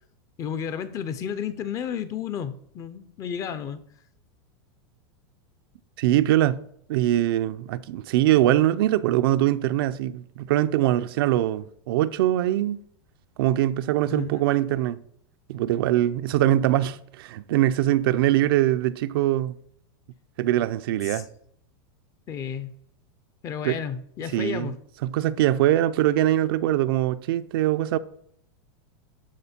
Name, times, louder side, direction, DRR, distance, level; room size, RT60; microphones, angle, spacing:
voice 1, 0.4-3.8 14.1-14.3 21.0-21.2 22.3-22.7 23.4-24.8, left 8 dB, 25° left, 0.6 m, -32 dB
voice 2, 6.0-6.6 6.9-12.8 13.4-15.0 15.5-19.5 20.4-21.3 23.6-23.8 24.3-24.7 25.0-28.0, right 13 dB, 60° right, 0.5 m, -22 dB
12.5 x 4.4 x 4.3 m
supercardioid pair, 160°, 14 cm